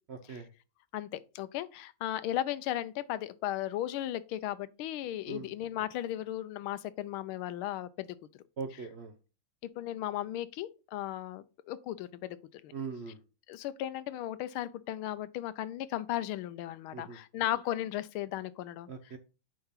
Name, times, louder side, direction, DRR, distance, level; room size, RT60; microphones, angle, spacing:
voice 1, 0.1-0.5 5.3-5.5 8.6-9.1 12.7-13.2 16.9-17.2 18.9-19.2, right 5 dB, 75° right, 0.6 m, -41 dB
voice 2, 0.9-8.1 9.8-12.7 13.5-18.9, left 13 dB, 90° left, 1.5 m, -36 dB
9.1 x 3.7 x 5.7 m
omnidirectional pair, 2.2 m